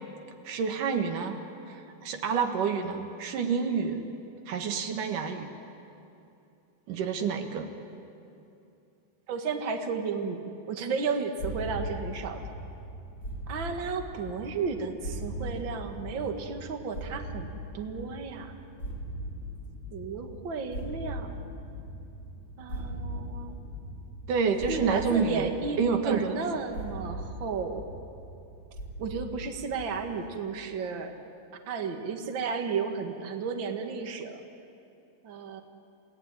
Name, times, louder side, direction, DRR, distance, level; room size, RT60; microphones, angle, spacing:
voice 1, 0.4-1.4 1.7-4.0 4.5-5.5 6.9-7.7 24.3-25.5 25.8-26.4, right 6 dB, 80° right, 5 dB, 3.2 m, -28 dB
voice 2, 9.3-12.4 13.5-18.5 19.9-21.4 22.6-23.6 24.7-27.9 29.0-31.1 31.7-34.4 35.2-35.6, right 5 dB, 40° right, 4 dB, 2.2 m, -33 dB
sound 1, 11.4-30.3, equal, 40° left, 4.5 m, -40 dB
29.5 x 18.5 x 9.7 m, 2.7 s
omnidirectional pair, 3.7 m